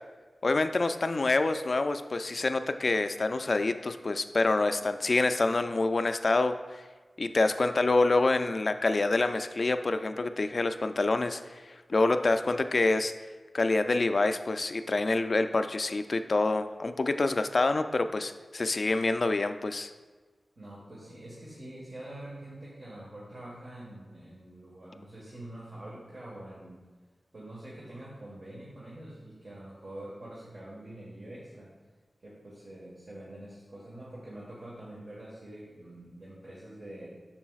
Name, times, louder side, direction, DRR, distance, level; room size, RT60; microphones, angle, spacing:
voice 1, 0.4-6.8 7.2-11.6 11.9-13.1 13.5-19.9, left 3 dB, 55° left, 9 dB, 0.3 m, -27 dB
voice 2, 20.5-26.8 27.3-31.7 32.2-37.1, right 1 dB, 55° right, -6 dB, 1.4 m, -45 dB
7.1 x 6.2 x 2.4 m, 1.4 s
wide cardioid pair, 75°, 0 cm